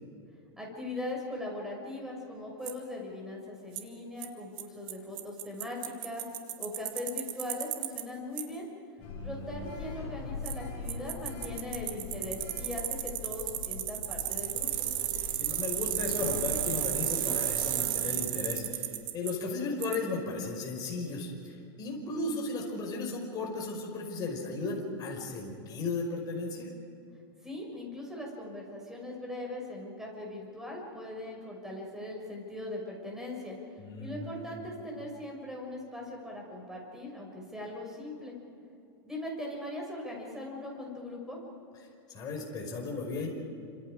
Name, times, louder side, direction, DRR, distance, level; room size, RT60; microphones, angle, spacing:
voice 1, 0.6-6.3 6.6-8.7 9.2-14.9 27.4-33.5 34.0-38.3 39.0-41.4, left 1 dB, 5° right, -1 dB, 6.2 m, -40 dB
Bicycle, 2.7-2.8 3.8-3.9 4.2-4.3 4.6-4.7 4.9-5.0 5.2-8.0 8.4-8.5 10.4-10.5 10.9-19.3 19.8-20.0, right 13 dB, 60° right, 2.2 m, -33 dB
Sliding door, 9.0-18.6, left 4 dB, 45° left, 4.7 m, -42 dB
voice 2, 9.0-9.7 15.4-26.7 33.8-34.6 42.1-43.3, left 3 dB, 30° left, -1 dB, 5.3 m, -35 dB
29.5 x 26.5 x 5.0 m, 2.6 s
supercardioid pair, 145°, 14 cm